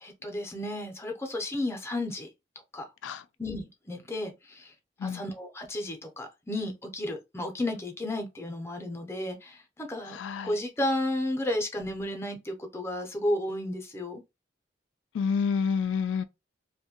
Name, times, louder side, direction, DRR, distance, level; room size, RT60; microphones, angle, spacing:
voice 1, 0.0-2.3 2.7-2.8 3.4-4.7 5.0-10.2 10.4-14.2, left 1 dB, 15° left, 0.5 m, -33 dB
voice 2, 10.0-10.6 15.1-16.2, left 6 dB, 90° left, 0.3 m, -29 dB
2.6 x 2.2 x 2.8 m
head